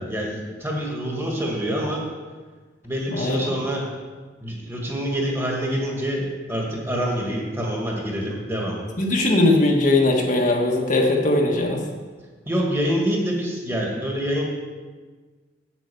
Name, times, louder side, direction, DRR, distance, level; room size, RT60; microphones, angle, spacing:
voice 1, 0.0-2.0 2.8-3.9 4.4-8.8 12.5-14.4, equal, 15° right, -1 dB, 1.9 m, -26 dB
voice 2, 3.1-3.6 9.0-11.8, left 2 dB, 45° left, 0 dB, 1.4 m, -20 dB
8.1 x 7.9 x 6.9 m, 1.4 s
head